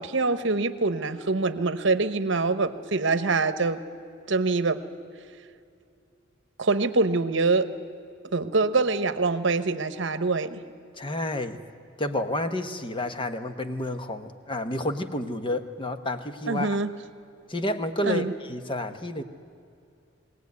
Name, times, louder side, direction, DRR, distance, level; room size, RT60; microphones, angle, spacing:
voice 1, 0.0-3.8 4.3-4.8 6.6-7.7 8.3-10.6 16.5-16.9 18.0-18.3, right 3 dB, 65° right, 11 dB, 1.0 m, -24 dB
voice 2, 11.0-11.6 12.0-16.8 17.5-19.2, left 1 dB, 25° left, 8 dB, 1.0 m, -30 dB
22.0 x 17.5 x 9.5 m, 2.5 s
head